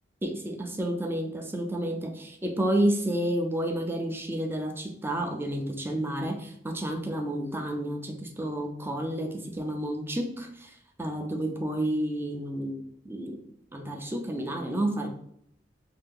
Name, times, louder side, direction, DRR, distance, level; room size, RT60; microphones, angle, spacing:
voice 1, 0.2-13.4 13.7-15.1, right 1 dB, 15° right, 3 dB, 0.5 m, -30 dB
2.8 x 2.6 x 3.6 m, 0.69 s
head